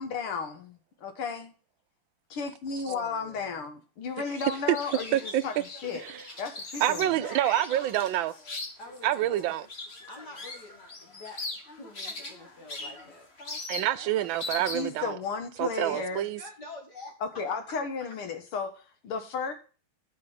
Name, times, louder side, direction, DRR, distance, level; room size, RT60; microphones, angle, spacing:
voice 1, 0.0-1.5 2.3-6.0 6.4-7.1 14.7-16.2 17.2-19.5, left 5 dB, 75° left, 2.4 m, -34 dB
voice 2, 2.9-3.7 7.2-8.1 8.8-9.6 10.1-10.7 11.0-11.4 11.7-13.3 15.9-17.4, left 2 dB, 50° left, 2.3 m, -46 dB
sound 1, 4.2-15.0, left 2 dB, 30° left, 1.6 m, -40 dB
voice 3, 5.1-5.4 6.0-6.2 6.8-8.3 9.0-9.7 13.7-15.2 15.6-16.4, right 13 dB, 70° right, 1.3 m, -27 dB
9.9 x 5.1 x 7.3 m
omnidirectional pair, 2.4 m